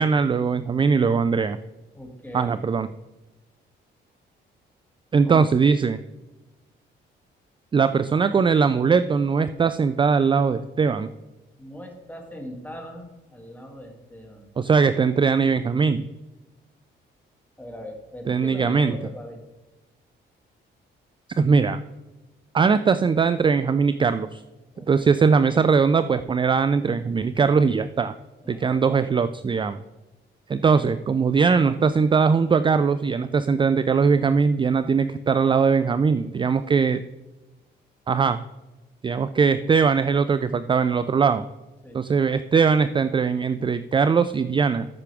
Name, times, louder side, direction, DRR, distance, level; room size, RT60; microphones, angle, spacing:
voice 1, 0.0-1.6 2.3-2.9 5.1-6.0 7.7-11.1 14.6-16.0 18.3-18.9 21.4-21.8 22.5-24.4 24.8-28.1 28.5-29.8 30.5-37.0 38.1-38.4 39.0-41.4 41.9-44.9, right 5 dB, 25° right, 13 dB, 0.4 m, -20 dB
voice 2, 1.9-2.6 5.2-5.5 11.6-14.5 17.6-19.4 24.7-25.3 28.4-28.8 41.8-42.0, equal, 10° left, 1 dB, 2.5 m, -40 dB
13.5 x 5.9 x 3.5 m, 1.1 s
cardioid pair, 90°, 20 cm